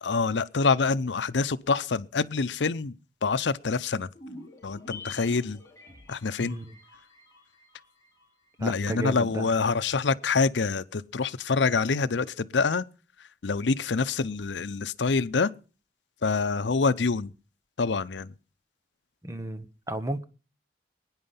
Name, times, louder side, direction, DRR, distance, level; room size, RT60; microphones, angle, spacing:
voice 1, 0.0-2.9 3.2-4.1 4.6-5.6 6.1-6.6 8.6-12.9 13.4-15.5 16.2-17.3 17.8-18.3, left 4 dB, 90° left, 0.7 m, -26 dB
sound 1, 4.1-8.6 8.9-9.0, left 3 dB, 15° left, 4.1 m, -47 dB
voice 2, 6.4-6.7 8.6-9.5 19.2-20.2, right 1 dB, 20° right, 1.1 m, -33 dB
22.0 x 9.7 x 5.7 m
head